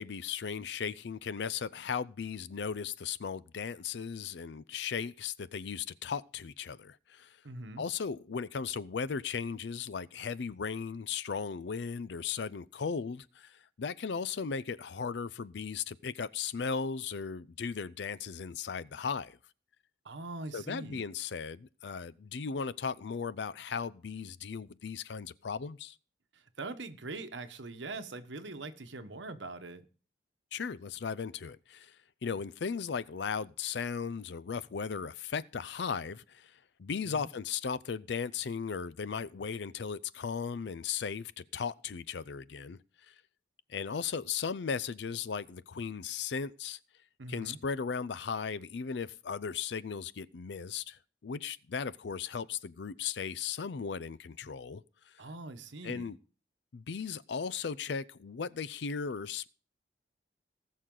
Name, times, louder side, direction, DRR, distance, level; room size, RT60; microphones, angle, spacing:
voice 1, 0.0-7.4 7.8-19.4 20.5-26.0 30.5-32.0 32.2-42.8 43.1-43.2 43.7-46.8 47.3-55.1 55.8-56.2 56.7-59.5, left 6 dB, 70° left, 0.5 m, -37 dB
voice 2, 7.4-7.8 20.0-21.0 26.3-29.9 37.1-37.3 47.2-47.6 55.2-56.1, right 2 dB, 80° right, 1.1 m, -42 dB
19.0 x 6.5 x 3.8 m
head